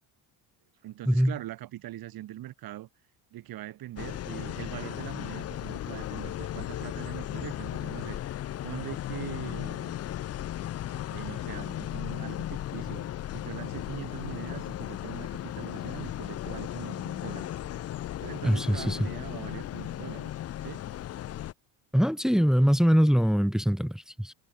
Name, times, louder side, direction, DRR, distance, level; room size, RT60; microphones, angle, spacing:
voice 1, 0.8-2.9 3.3-10.0 11.1-17.5 18.2-20.3 20.6-20.8, right 14 dB, 55° right, 3.5 m, -42 dB
sound 1, 4.0-21.5, left 12 dB, 35° left, 0.7 m, -36 dB
voice 2, 18.4-19.0 21.9-24.3, equal, ahead, 0.6 m, -23 dB
cardioid pair, 150°, 42 cm